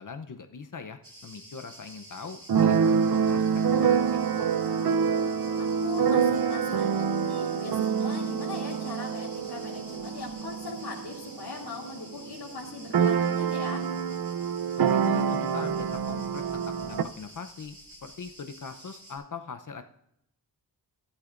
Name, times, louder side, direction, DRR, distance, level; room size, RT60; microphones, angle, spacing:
voice 1, 0.0-4.2 14.8-19.9, left 5 dB, 50° left, 7 dB, 0.7 m, -41 dB
Cricket, 1.0-19.2, right 1 dB, 35° right, 3.7 m, -49 dB
Keyboard (musical), 2.5-12.0 12.3-12.4 12.6-17.0, right 7 dB, 60° right, 0.6 m, -26 dB
voice 2, 5.6-13.8, left 3 dB, 70° left, -3 dB, 2.7 m, -40 dB
14.0 x 11.5 x 2.5 m, 0.77 s
wide cardioid pair, 115°, 40 cm